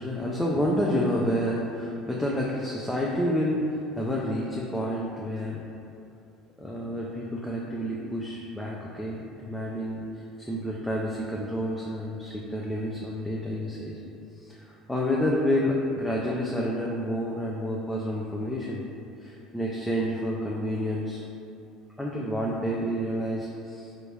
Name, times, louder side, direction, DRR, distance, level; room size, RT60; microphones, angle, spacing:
voice 1, 0.0-5.6 6.6-14.0 14.4-18.8 19.2-21.2 22.0-23.9, equal, 5° left, -4 dB, 0.4 m, -29 dB
3.1 x 2.5 x 3.2 m, 2.6 s
hypercardioid pair, 70°, 0 cm